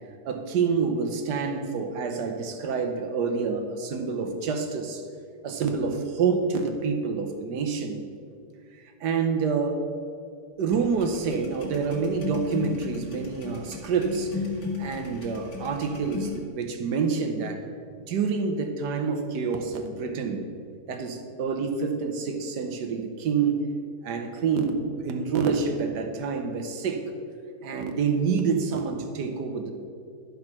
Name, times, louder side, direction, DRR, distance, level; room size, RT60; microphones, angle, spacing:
voice 1, 0.2-5.0 5.4-8.0 9.0-9.8 10.6-14.3 14.8-17.6 18.1-20.5 20.9-23.6 24.0-27.0 27.6-29.7, right 5 dB, 85° right, 5 dB, 1.5 m, -27 dB
sound 1, 10.7-16.4, left 5 dB, 80° left, 2.4 m, -35 dB
11.5 x 5.5 x 6.0 m, 2.3 s
omnidirectional pair, 1.8 m